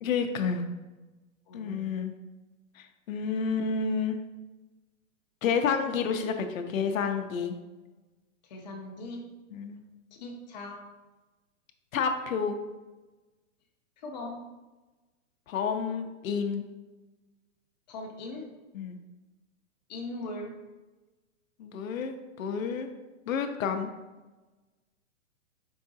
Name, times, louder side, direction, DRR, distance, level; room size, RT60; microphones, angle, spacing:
voice 1, 0.0-0.6 1.5-2.1 2.8-4.2 5.4-7.6 9.5-9.8 11.9-12.6 15.5-16.6 18.7-19.0 21.6-22.9 23.3-23.9, left 6 dB, 80° left, 7 dB, 0.6 m, -30 dB
voice 2, 1.5-1.8 8.4-9.3 10.2-10.8 14.0-14.4 17.9-18.5 19.9-20.6, left 2 dB, 35° left, 1 dB, 0.6 m, -39 dB
4.7 x 3.5 x 2.7 m, 1.2 s
hypercardioid pair, 160°, 40 cm